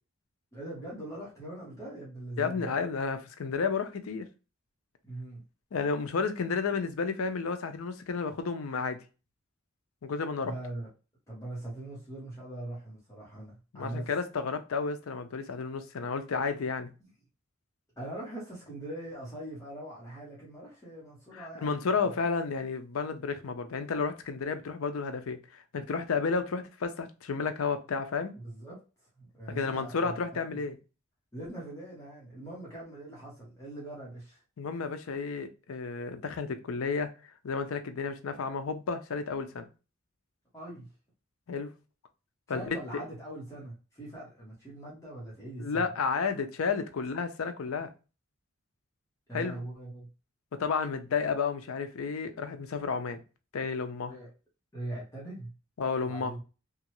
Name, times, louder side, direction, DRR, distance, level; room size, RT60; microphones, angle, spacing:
voice 1, 0.5-2.7 5.0-5.4 10.4-10.9 11.3-14.1 18.0-21.8 28.3-28.8 29.2-30.6 31.3-34.4 40.5-40.9 42.5-45.9 49.3-50.1 54.1-54.3 54.7-55.5 56.0-56.4, right 1 dB, 15° left, 1.1 m, -41 dB
voice 2, 2.4-4.3 5.7-9.0 10.0-10.5 13.7-16.9 21.3-28.3 29.5-30.8 34.6-37.1 37.4-39.7 41.5-41.7 42.5-43.0 45.6-47.9 49.3-49.6 50.5-53.2 53.5-54.1 55.8-56.3, left 5 dB, 85° left, 0.5 m, -32 dB
3.0 x 2.4 x 2.9 m
head